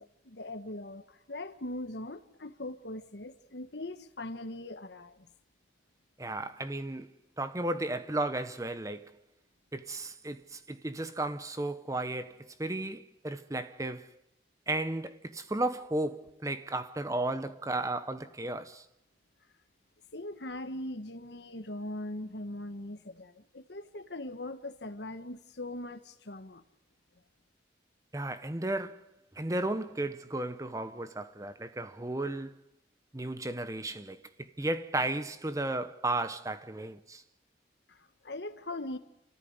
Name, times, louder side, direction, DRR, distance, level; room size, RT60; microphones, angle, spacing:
voice 1, 0.0-5.3 20.1-26.6 37.9-39.0, left 1 dB, 70° left, 1.4 m, -41 dB
voice 2, 6.2-7.1 7.4-9.1 9.7-14.1 14.7-18.8 28.1-29.0 29.4-32.5 33.1-37.2, right 2 dB, 15° right, 0.9 m, -34 dB
28.0 x 14.0 x 9.5 m
head